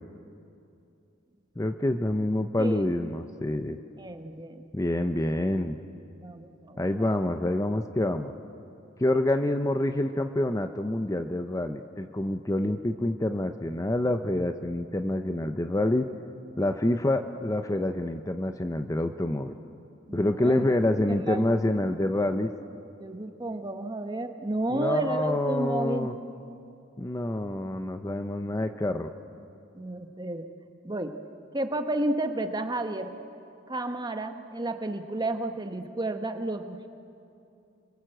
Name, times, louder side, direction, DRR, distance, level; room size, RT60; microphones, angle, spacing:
voice 1, 1.6-3.8 4.7-5.8 6.8-8.4 9.0-16.0 16.6-19.5 20.1-22.5 24.7-26.2 27.0-29.1, left 1 dB, 15° left, 7 dB, 0.6 m, -27 dB
voice 2, 2.6-2.9 4.0-4.7 6.2-7.2 20.1-20.7 21.1-21.5 23.0-26.1 29.7-30.5 30.8-31.2 31.5-33.1 33.7-36.9, right 2 dB, 20° right, 7 dB, 1.2 m, -32 dB
29.5 x 22.0 x 7.8 m, 2.7 s
head